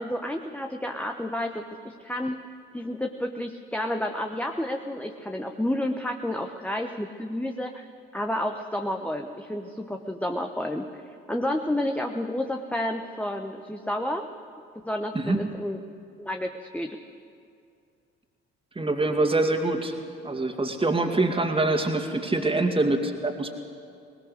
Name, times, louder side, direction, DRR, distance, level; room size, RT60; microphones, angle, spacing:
voice 1, 0.0-2.4 2.7-7.8 8.1-11.0 11.3-14.3 14.8-15.8 16.2-17.0, left 1 dB, 5° left, 4 dB, 1.1 m, -30 dB
voice 2, 15.1-15.5 18.8-19.9 20.2-23.5, right 2 dB, 15° right, 4 dB, 2.4 m, -25 dB
20.5 x 19.5 x 6.6 m, 2.4 s
figure-of-eight pair, 50°, 32 cm